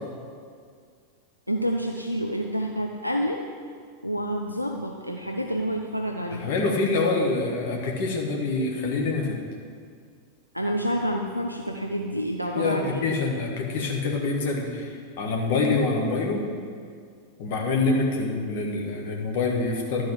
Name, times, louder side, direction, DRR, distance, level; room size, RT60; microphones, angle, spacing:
voice 1, 1.5-3.4 4.0-6.4 10.5-13.0, equal, 90° left, 1 dB, 0.5 m, -28 dB
voice 2, 6.3-9.4 12.6-16.5 17.4-20.1, left 3 dB, 50° left, 0 dB, 1.6 m, -26 dB
12.0 x 4.7 x 6.3 m, 2.1 s
figure-of-eight pair, 90°, 0 cm